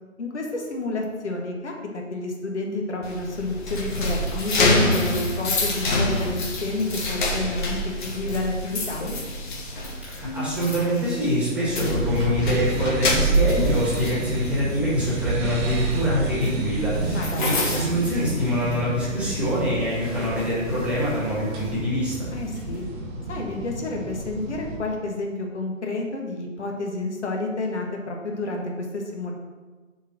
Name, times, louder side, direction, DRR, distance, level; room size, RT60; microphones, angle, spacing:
voice 1, 0.2-9.1 17.1-17.7 22.3-22.8 23.3-29.3, left 2 dB, 60° left, 1 dB, 1.6 m, -30 dB
sound 1, 3.0-19.0 19.3-19.6 20.0-21.7, left 1 dB, 40° left, 1.7 m, -27 dB
voice 2, 10.0-22.3, equal, 5° right, -8 dB, 1.7 m, -25 dB
sound 2, 11.9-24.8, right 2 dB, 20° right, 1.0 m, -29 dB
6.9 x 4.3 x 6.3 m, 1.3 s
figure-of-eight pair, 145°, 39 cm